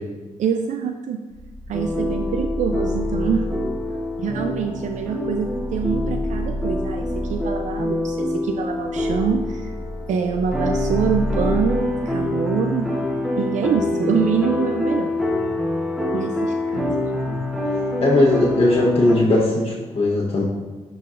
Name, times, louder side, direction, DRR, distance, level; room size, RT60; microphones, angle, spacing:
voice 1, 0.4-1.2 1.7-3.4 4.2-9.7 10.1-12.9 13.4-15.1 16.1-16.9 17.2-17.3, right 7 dB, 70° right, 5 dB, 0.4 m, -25 dB
sound 1, 1.3-11.8, equal, 25° right, 1.3 m, -31 dB
sound 2, 1.7-19.2, left 1 dB, 5° right, 0.9 m, -26 dB
voice 2, 18.0-20.4, left 2 dB, 50° left, -5 dB, 1.0 m, -18 dB
9.8 x 4.0 x 2.5 m, 1.3 s
cardioid pair, 90°, 13 cm